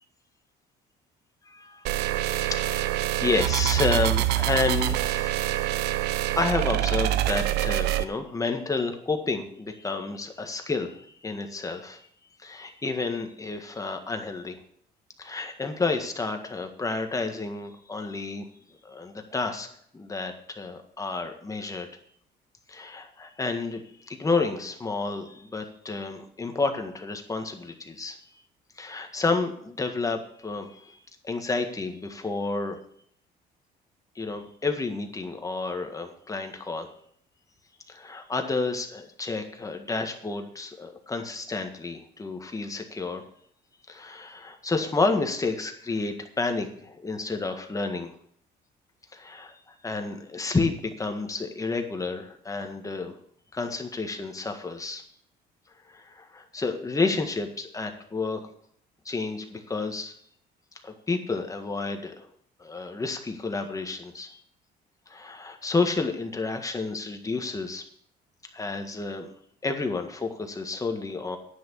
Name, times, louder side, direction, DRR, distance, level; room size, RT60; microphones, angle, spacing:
voice 1, 1.4-1.8 2.1-6.0 6.4-12.0 12.4-14.6 15.2-18.5 18.8-19.7 19.9-21.9 22.7-28.2 28.8-31.0 31.2-32.8 34.1-36.9 37.9-43.2 43.9-48.1 49.1-53.2 53.5-55.0 55.9-58.5 59.0-60.1 60.8-62.3 62.6-64.4 65.1-67.8 68.5-69.3 69.6-71.4, left 3 dB, 20° left, 5 dB, 1.7 m, -30 dB
sound 1, 1.9-8.0, right 14 dB, 85° right, 0.6 m, -25 dB
10.0 x 6.2 x 8.4 m, 0.66 s
cardioid pair, 110°, 17 cm